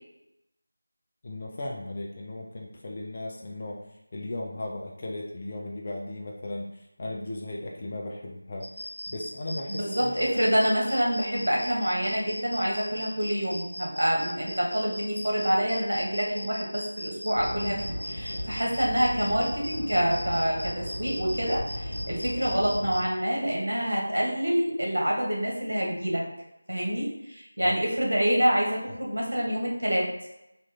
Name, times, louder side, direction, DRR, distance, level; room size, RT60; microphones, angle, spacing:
voice 1, 1.2-3.8 4.1-8.7 9.1-10.3 27.6-27.8, left 1 dB, 30° left, -1 dB, 0.5 m, -36 dB
sound 1, 8.6-23.0, equal, 85° left, 1.1 m, -38 dB
voice 2, 9.7-26.2 26.7-30.1, equal, 65° right, -2 dB, 1.4 m, -27 dB
sound 2, 17.3-23.0, equal, 50° left, 1.0 m, -37 dB
3.0 x 2.7 x 3.8 m, 0.90 s
figure-of-eight pair, 165°, 0 cm